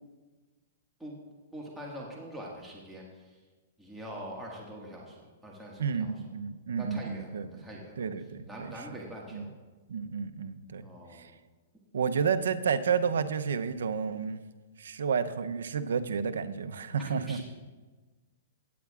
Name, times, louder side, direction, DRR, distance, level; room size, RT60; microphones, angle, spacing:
voice 1, 1.5-3.0 3.8-6.1 6.8-8.0 8.5-9.5 10.8-11.3 17.0-17.4, right 1 dB, 5° right, -4 dB, 1.7 m, -43 dB
voice 2, 5.8-7.7 8.0-8.9 9.3-9.5 9.9-11.3 11.9-14.4 14.8-17.4, right 6 dB, 85° right, 11 dB, 0.6 m, -31 dB
17.0 x 9.2 x 2.4 m, 1.3 s
hypercardioid pair, 140°, 0 cm